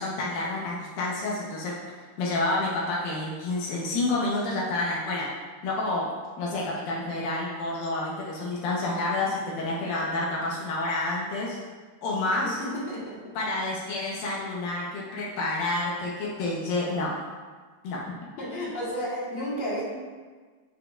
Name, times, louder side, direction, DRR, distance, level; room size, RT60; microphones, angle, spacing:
voice 1, 0.0-5.3 5.6-6.1 6.4-11.6 12.0-12.6 13.4-17.1 17.8-18.2, left 2 dB, 80° left, -5 dB, 2.8 m, -29 dB
voice 2, 12.4-13.3 18.4-19.9, equal, 55° left, -6 dB, 2.6 m, -32 dB
10.0 x 7.5 x 2.5 m, 1.5 s
omnidirectional pair, 4.1 m